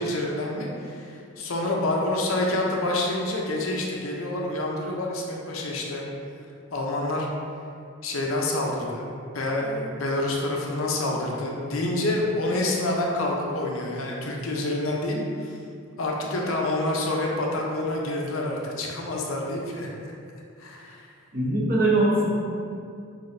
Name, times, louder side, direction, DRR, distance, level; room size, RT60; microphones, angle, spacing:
voice 1, 0.0-6.0 6.7-7.3 8.0-9.1 9.3-15.5 16.0-19.9 20.6-21.1, left 1 dB, 70° left, -2 dB, 0.6 m, -27 dB
voice 2, 21.3-22.3, right 2 dB, 40° right, -6 dB, 0.9 m, -21 dB
5.8 x 2.8 x 2.6 m, 2.4 s
head